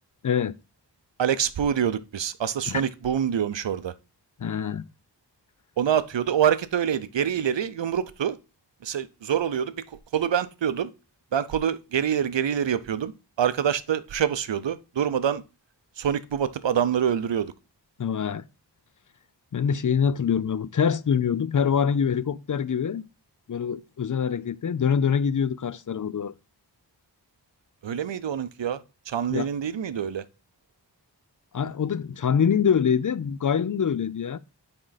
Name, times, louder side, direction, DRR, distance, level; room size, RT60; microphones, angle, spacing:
voice 1, 0.2-0.5 2.7-2.8 4.4-4.8 18.0-18.4 19.5-23.0 23.5-26.3 29.3-29.5 31.5-34.4, left 7 dB, 45° left, 0.5 m, -25 dB
voice 2, 1.2-3.9 5.8-8.4 8.8-9.7 10.1-10.9 11.3-13.1 13.4-15.4 16.0-17.5 27.8-28.8 29.1-30.2, right 8 dB, 90° right, 0.7 m, -25 dB
8.9 x 3.8 x 3.9 m
wide cardioid pair, 75°, 43 cm